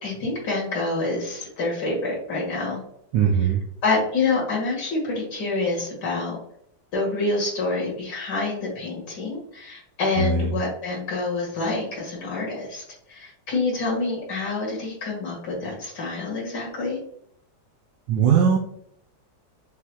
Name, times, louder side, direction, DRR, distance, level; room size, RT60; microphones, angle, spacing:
voice 1, 0.0-2.8 3.4-3.5 3.8-6.4 6.9-12.8 13.1-17.0, left 3 dB, 70° left, -3 dB, 2.4 m, -27 dB
voice 2, 3.1-3.6 10.2-10.5 18.1-18.6, right 7 dB, 90° right, -1 dB, 1.3 m, -19 dB
6.1 x 2.8 x 2.3 m, 0.70 s
omnidirectional pair, 1.9 m